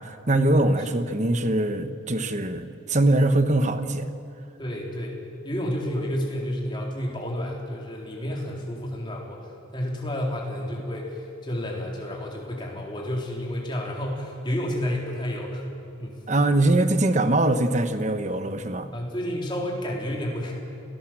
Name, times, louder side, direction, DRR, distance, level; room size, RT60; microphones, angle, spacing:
voice 1, 0.0-4.1 16.3-18.9, right 2 dB, 35° right, 9 dB, 1.2 m, -22 dB
voice 2, 4.6-5.2 5.4-15.6 16.0-16.2 18.9-20.5, equal, 25° left, -1 dB, 3.9 m, -30 dB
28.0 x 18.0 x 7.6 m, 2.5 s
head